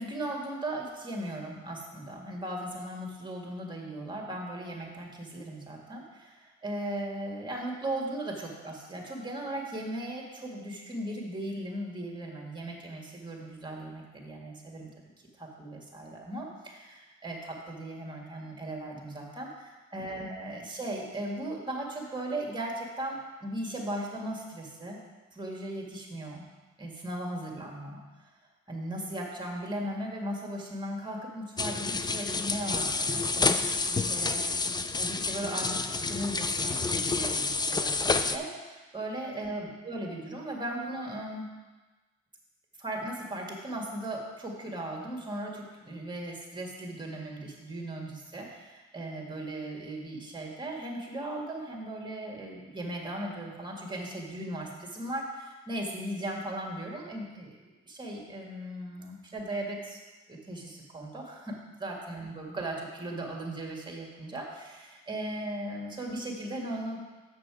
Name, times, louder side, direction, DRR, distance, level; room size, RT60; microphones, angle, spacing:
voice 1, 0.0-14.9 15.4-19.5 19.9-25.0 25.3-26.5 26.8-28.0 28.7-41.5 42.8-57.5 57.9-60.0 60.3-67.0, right 1 dB, 15° right, -1 dB, 1.9 m, -37 dB
sound 1, 31.6-38.4, left 3 dB, 15° left, 0.4 m, -29 dB
6.9 x 6.6 x 4.9 m, 1.2 s
cardioid pair, 90°, 30 cm